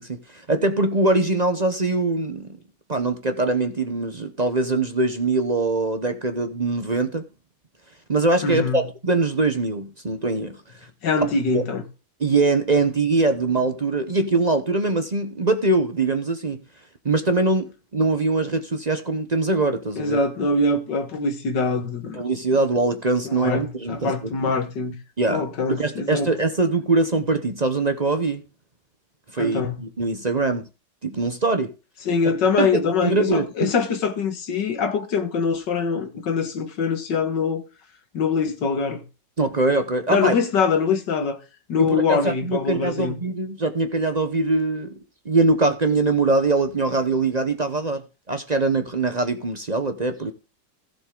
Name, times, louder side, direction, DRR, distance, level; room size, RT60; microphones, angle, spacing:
voice 1, 0.0-2.6 2.9-7.2 8.1-10.6 11.5-11.6 12.2-16.6 17.0-20.2 22.1-24.1 25.2-28.4 29.3-30.6 31.0-31.7 32.6-33.7 39.4-40.3 41.8-45.0 45.2-50.3, right 3 dB, 35° right, 0.7 m, -22 dB
voice 2, 8.4-8.8 11.0-11.8 20.0-22.2 23.2-25.0 25.3-26.3 29.4-29.8 32.0-37.6 38.1-39.0 40.1-41.4 41.7-43.2, left 4 dB, 70° left, 2.2 m, -23 dB
15.5 x 6.8 x 3.8 m
omnidirectional pair, 2.0 m